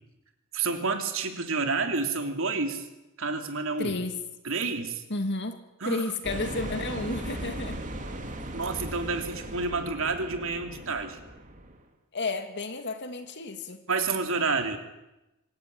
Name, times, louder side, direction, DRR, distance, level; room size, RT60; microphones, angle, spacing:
voice 1, 0.5-2.9 3.2-4.0 4.4-5.0 5.8-6.0 8.5-11.2 13.9-14.8, right 4 dB, 65° right, 6 dB, 3.1 m, -29 dB
voice 2, 3.8-4.1 5.1-7.8 12.1-13.8, left 2 dB, 55° left, 7 dB, 2.6 m, -32 dB
sound 1, 6.2-11.8, right 1 dB, 35° right, 2.8 m, -38 dB
25.0 x 15.0 x 9.8 m, 0.96 s
head